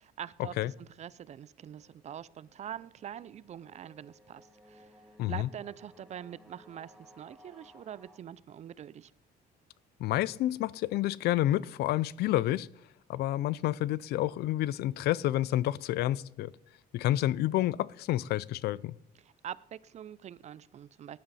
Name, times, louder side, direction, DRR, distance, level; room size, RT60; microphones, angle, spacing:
voice 1, 0.0-9.1 19.2-21.2, right 10 dB, 40° right, 0.4 m, -44 dB
sound 1, 1.5-8.2, equal, 5° right, 2.0 m, -59 dB
voice 2, 10.0-12.7 13.1-16.5 16.9-18.9, left 14 dB, 70° left, 0.4 m, -29 dB
17.5 x 10.5 x 4.2 m
cardioid pair, 110°, 17 cm